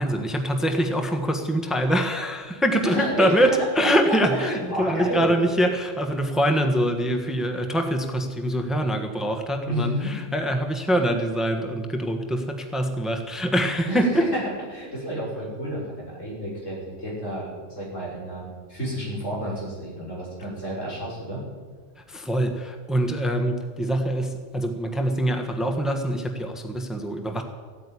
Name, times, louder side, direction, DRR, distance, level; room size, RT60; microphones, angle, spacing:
voice 1, 0.0-14.3 22.1-27.4, equal, ahead, 5 dB, 1.3 m, -24 dB
voice 2, 2.8-5.3 9.6-10.1 13.8-14.4 14.7-18.4 18.7-21.4, equal, 90° left, -6 dB, 6.4 m, -30 dB
15.0 x 9.0 x 9.9 m, 1.5 s
omnidirectional pair, 1.3 m